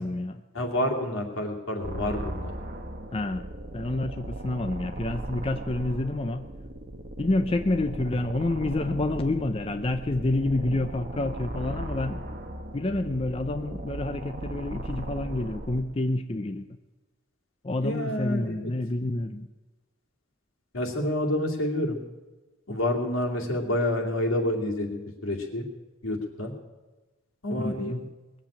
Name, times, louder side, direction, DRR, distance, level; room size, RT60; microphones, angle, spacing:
voice 1, 0.0-0.4 3.1-3.4 3.7-6.5 7.2-12.2 12.7-16.6 17.6-19.5 27.6-28.0, left 2 dB, 30° left, 8 dB, 0.5 m, -28 dB
voice 2, 0.5-2.5 17.8-18.7 20.7-22.0 22.7-25.7 26.0-26.5 27.4-28.0, left 1 dB, 85° left, 1 dB, 2.7 m, -28 dB
sound 1, 1.8-15.8, right 1 dB, 40° right, 1.2 m, -37 dB
20.0 x 7.7 x 8.8 m, 1.2 s
head